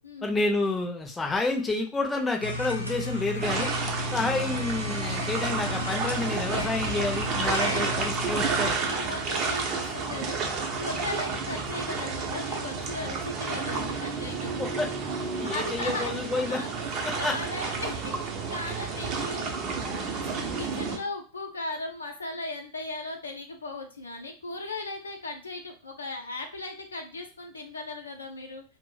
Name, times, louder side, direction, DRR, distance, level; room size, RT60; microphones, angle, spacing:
voice 1, 0.2-3.7 4.1-8.8 14.6-14.9 15.4-16.6 17.0-17.4, left 2 dB, 10° left, 2 dB, 0.6 m, -29 dB
sound 1, 2.4-8.8, left 1 dB, 90° right, 0.6 m, -33 dB
sound 2, 3.4-21.0, right 4 dB, 35° right, 0.5 m, -31 dB
voice 2, 7.4-7.9 8.8-10.4 10.8-14.6 15.4-19.5 20.4-28.6, left 2 dB, 75° left, 3 dB, 0.5 m, -37 dB
2.5 x 2.0 x 3.8 m, 0.36 s
figure-of-eight pair, 90°, 0 cm